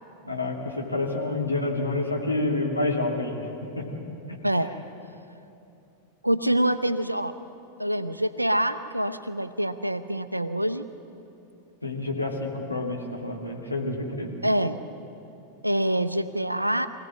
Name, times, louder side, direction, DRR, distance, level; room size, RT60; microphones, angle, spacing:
voice 1, 0.2-3.4 3.8-3.9 4.3-4.4 11.8-14.3, left 2 dB, 85° left, -1 dB, 2.6 m, -28 dB
voice 2, 6.2-7.3 7.8-10.8 14.4-14.8 15.6-16.9, right 1 dB, 85° right, 10 dB, 0.8 m, -25 dB
24.0 x 16.5 x 7.6 m, 2.8 s
figure-of-eight pair, 90°, 0 cm